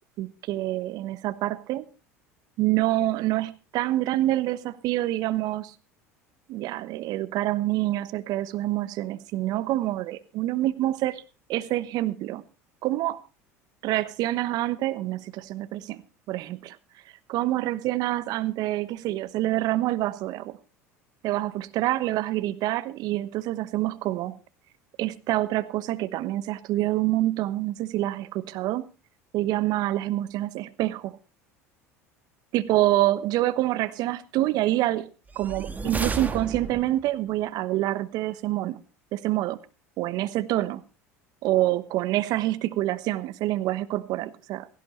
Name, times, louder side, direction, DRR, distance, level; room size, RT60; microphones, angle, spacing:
voice 1, 0.2-1.8 2.6-5.7 6.5-11.2 11.5-12.4 12.8-13.2 13.8-16.0 16.3-16.8 17.3-20.6 21.2-24.4 25.0-28.9 29.3-31.2 32.5-35.1 35.3-38.8 39.1-39.6 40.0-40.8 41.4-44.7, right 15 dB, 55° right, 1.1 m, -26 dB
sound 1, 35.3-37.1, right 4 dB, 20° right, 1.5 m, -32 dB
17.0 x 15.5 x 3.2 m
hypercardioid pair, 70°, 8 cm